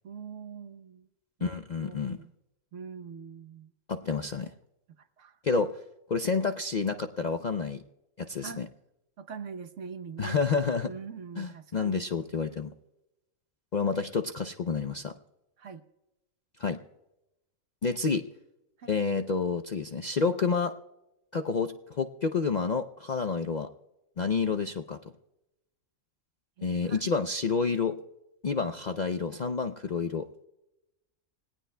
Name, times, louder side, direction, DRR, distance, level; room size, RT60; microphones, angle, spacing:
voice 1, 0.0-1.1 1.4-2.3 2.7-3.7 5.0-5.4 8.4-8.6 9.2-10.4 10.8-12.1 15.6-15.8 18.8-19.0 26.6-27.0, right 6 dB, 65° right, 9 dB, 1.2 m, -43 dB
voice 2, 1.4-2.2 3.9-4.5 5.4-5.7 6.1-7.8 8.2-8.7 10.2-10.9 11.4-12.7 13.7-15.1 16.6-16.8 17.8-18.2 18.9-20.7 21.3-23.7 24.2-25.0 26.6-28.0 28.4-30.3, left 5 dB, 50° left, 6 dB, 0.5 m, -29 dB
26.5 x 18.0 x 2.2 m, 0.93 s
omnidirectional pair, 1.4 m